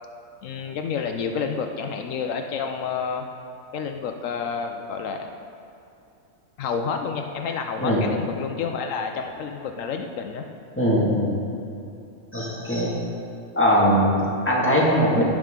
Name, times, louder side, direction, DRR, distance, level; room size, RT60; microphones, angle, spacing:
voice 1, 0.4-3.2 3.7-5.3 6.6-10.4, left 6 dB, 80° left, 5 dB, 1.0 m, -29 dB
voice 2, 10.8-11.3 12.3-13.0 13.6-15.2, equal, 10° left, -5 dB, 1.8 m, -20 dB
16.0 x 6.3 x 3.7 m, 2.6 s
omnidirectional pair, 1.3 m